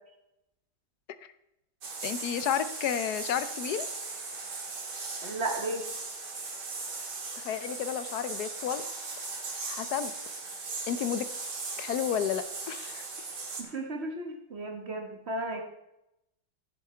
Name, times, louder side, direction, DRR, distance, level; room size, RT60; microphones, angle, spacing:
sound 1, 1.8-13.6, right 3 dB, 70° right, 2.5 m, -38 dB
voice 1, 2.0-3.9 7.4-8.9 9.2-9.3 9.7-10.1 10.9-11.3 11.8-13.1, left 9 dB, 70° left, 12 dB, 1.1 m, -31 dB
voice 2, 5.2-5.8 13.6-15.7, right 2 dB, 40° right, 3 dB, 1.5 m, -34 dB
14.5 x 7.5 x 4.4 m, 0.87 s
omnidirectional pair, 1.9 m